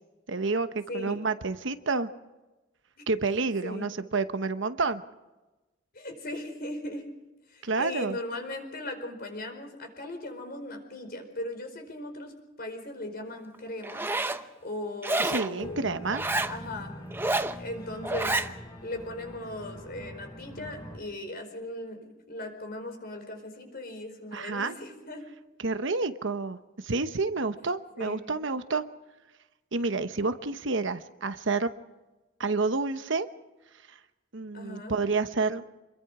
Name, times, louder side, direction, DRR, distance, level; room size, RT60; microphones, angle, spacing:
voice 1, 0.3-2.1 3.1-5.0 7.6-8.2 15.2-16.2 24.3-24.7 25.6-28.8 29.7-31.7 32.4-33.3 33.9-34.0 34.3-35.6, right 3 dB, 65° right, 10 dB, 1.0 m, -29 dB
voice 2, 0.9-1.2 3.0-3.1 3.6-3.9 5.9-7.1 7.5-14.1 14.3-15.9 16.5-16.9 17.6-18.4 18.8-25.2 28.0-28.2 34.5-35.0, left 1 dB, 50° left, 5 dB, 4.8 m, -38 dB
Zipper (clothing), 13.8-14.4 15.0-15.5 16.1-16.5 17.1-17.6 18.0-18.5, right 2 dB, 10° right, 0.8 m, -28 dB
Organ, 15.6-21.0, equal, 20° left, 4.5 m, -44 dB
27.0 x 22.0 x 4.9 m, 1.1 s
head